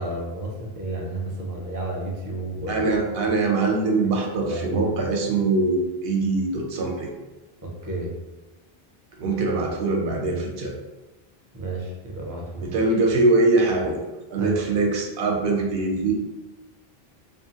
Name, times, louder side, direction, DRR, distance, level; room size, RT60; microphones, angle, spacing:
voice 1, 0.0-2.8 4.0-4.1 4.3-4.9 7.6-8.1 11.5-12.7 14.4-14.5, right 1 dB, 30° right, -2 dB, 0.4 m, -31 dB
voice 2, 2.7-7.1 9.2-10.7 12.6-14.0 14.3-16.1, right 3 dB, 70° right, 0 dB, 0.8 m, -22 dB
2.6 x 2.5 x 2.8 m, 1.1 s
omnidirectional pair, 1.0 m